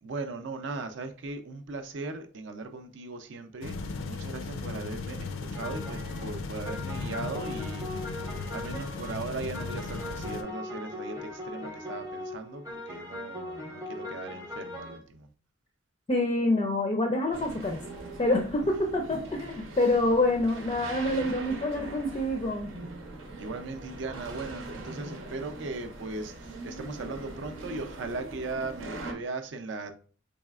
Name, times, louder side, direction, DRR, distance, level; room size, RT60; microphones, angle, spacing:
voice 1, 0.0-3.8 4.1-15.3 23.4-29.9, right 3 dB, 65° right, 0.5 m, -38 dB
sound 1, 3.6-10.4, left 3 dB, 85° left, 0.4 m, -36 dB
sound 2, 5.5-15.0, left 1 dB, 15° right, 0.6 m, -40 dB
voice 2, 16.1-17.8 18.2-22.7, left 1 dB, 25° left, 0.4 m, -26 dB
sound 3, 17.3-29.1, right 2 dB, 90° right, 0.8 m, -42 dB
4.1 x 3.1 x 2.3 m
head